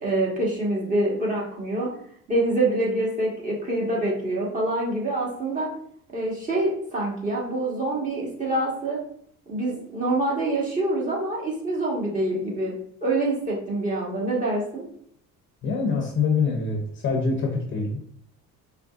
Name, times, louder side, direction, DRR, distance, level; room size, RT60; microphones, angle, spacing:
voice 1, 0.0-1.9 2.3-5.7 6.1-9.0 9.5-12.7 13.0-14.8, right 2 dB, 25° right, -4 dB, 1.4 m, -26 dB
voice 2, 15.6-18.0, left 4 dB, 35° left, 2 dB, 0.7 m, -25 dB
4.9 x 3.2 x 2.4 m, 0.65 s
cardioid pair, 130°, 33 cm